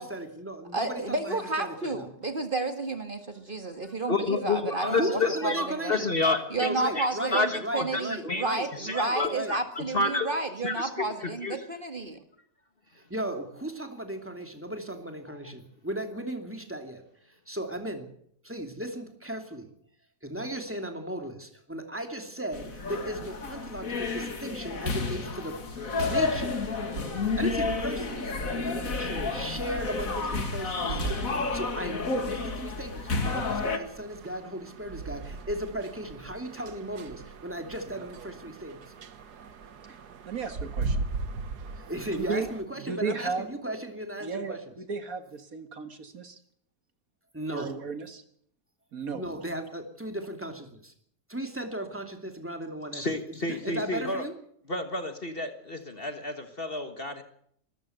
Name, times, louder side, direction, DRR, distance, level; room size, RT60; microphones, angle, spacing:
voice 1, 0.0-2.0 4.8-6.1 6.6-9.6 12.9-18.1 18.4-19.7 20.2-25.6 26.0-26.6 27.4-31.0 31.4-38.8 41.7-44.6 47.3-47.7 49.0-50.9 51.3-54.4, right 1 dB, 10° right, 5 dB, 2.9 m, -36 dB
voice 2, 0.7-5.9 6.5-12.2, right 3 dB, 35° right, 7 dB, 2.0 m, -31 dB
voice 3, 4.1-6.7 6.9-7.1 7.3-8.4 8.8-10.3 10.6-11.6 52.9-54.2 54.7-57.2, left 3 dB, 35° left, 8 dB, 1.6 m, -30 dB
sound 1, 22.5-33.8, left 4 dB, 60° left, 2.4 m, -31 dB
sound 2, 25.7-42.6, right 4 dB, 85° right, 1.8 m, -40 dB
voice 4, 40.3-41.0 42.1-42.5 42.8-43.5 44.2-46.4 47.5-48.2 48.9-49.2, right 4 dB, 60° right, 9 dB, 2.0 m, -34 dB
24.0 x 14.0 x 8.1 m, 0.68 s
omnidirectional pair, 1.7 m